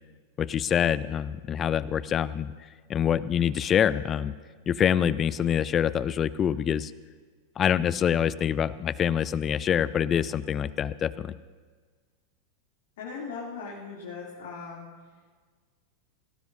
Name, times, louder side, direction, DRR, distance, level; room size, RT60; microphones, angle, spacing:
voice 1, 0.4-2.5 2.9-4.3 4.7-6.9 7.6-11.3, left 9 dB, 25° left, 18 dB, 0.4 m, -25 dB
voice 2, 13.0-14.9, left 5 dB, 55° left, -6 dB, 2.9 m, -38 dB
20.0 x 17.5 x 2.7 m, 1.5 s
figure-of-eight pair, 90°, 0 cm